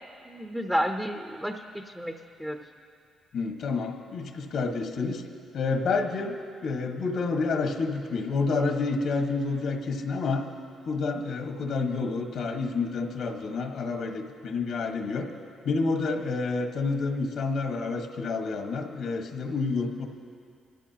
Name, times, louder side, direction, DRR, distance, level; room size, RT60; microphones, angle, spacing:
voice 1, 0.2-2.6, equal, 5° right, 4 dB, 0.7 m, -31 dB
voice 2, 3.3-5.2 5.5-6.4 6.6-10.4 10.8-15.3 15.6-20.1, left 4 dB, 70° left, 3 dB, 1.4 m, -29 dB
23.5 x 13.5 x 2.9 m, 2.3 s
cardioid pair, 90°, 0 cm